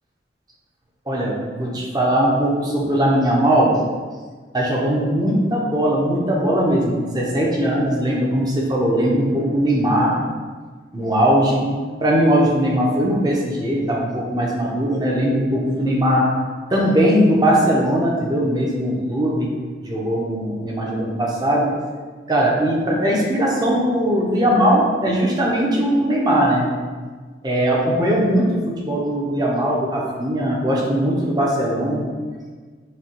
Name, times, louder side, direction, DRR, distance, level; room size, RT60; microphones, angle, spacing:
voice 1, 1.1-3.7 4.5-10.1 10.9-11.7 12.0-16.2 16.7-19.5 19.8-21.7 22.3-26.6 27.4-32.0, equal, 25° right, -3 dB, 0.7 m, -19 dB
5.9 x 2.3 x 2.9 m, 1.5 s
head